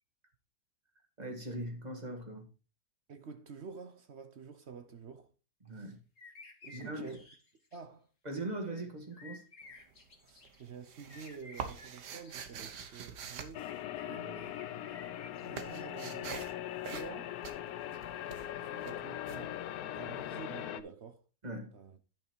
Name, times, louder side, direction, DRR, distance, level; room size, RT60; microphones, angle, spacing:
voice 1, 1.2-2.5 5.6-6.0 6.7-7.2 8.2-9.4 21.4-21.7, right 1 dB, 25° right, 1.9 m, -40 dB
voice 2, 3.1-5.3 5.8-5.9 6.6-7.2 7.7-8.1 10.2-13.6 14.0-16.4 16.9-17.3 18.6-19.6 19.9-21.2 21.7-22.0, right 5 dB, 50° right, 0.9 m, -49 dB
sound 1, 6.2-7.8 9.1-10.6 11.1-12.9 14.0-15.9, left 3 dB, 50° left, 2.1 m, -54 dB
sound 2, 9.6-10.2 10.4-14.5 14.8-20.4, right 7 dB, 80° right, 1.7 m, -45 dB
sound 3, 13.5-20.8, left 12 dB, 70° left, 1.1 m, -40 dB
10.5 x 5.6 x 4.5 m
omnidirectional pair, 1.8 m